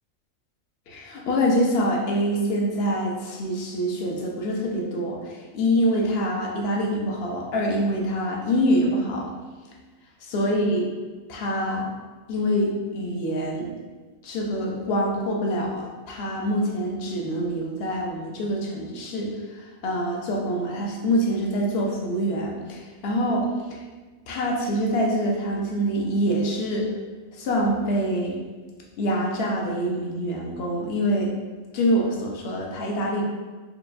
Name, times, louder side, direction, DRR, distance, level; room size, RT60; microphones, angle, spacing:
voice 1, 0.9-9.3 10.3-10.9 11.3-11.9 12.3-13.7 14.2-23.5 24.3-26.9 27.3-28.4 29.0-31.3 31.7-33.2, equal, 60° left, -1 dB, 0.7 m, -25 dB
4.7 x 2.2 x 2.5 m, 1.3 s
omnidirectional pair, 1.4 m